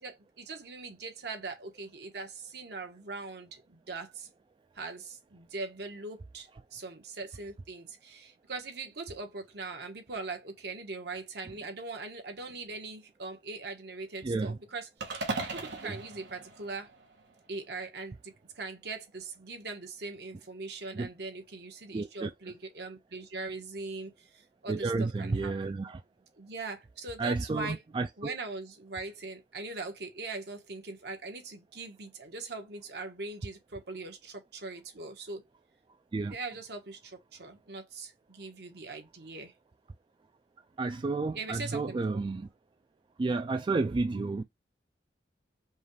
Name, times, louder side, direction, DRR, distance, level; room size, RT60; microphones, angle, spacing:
voice 1, 0.0-4.3 4.7-15.1 15.5-16.9 17.5-25.7 26.4-27.8 28.2-35.4 36.3-39.5 41.3-42.2, right 3 dB, 65° right, 1.3 m, -41 dB
voice 2, 14.2-14.6 15.8-16.0 20.9-21.1 21.9-22.3 24.7-26.0 27.2-28.3 36.1-36.4 40.8-42.5 43.2-44.4, right 3 dB, 30° right, 0.3 m, -31 dB
sound 1, 15.0-17.3, right 3 dB, 80° right, 1.5 m, -38 dB
5.3 x 2.4 x 3.2 m
head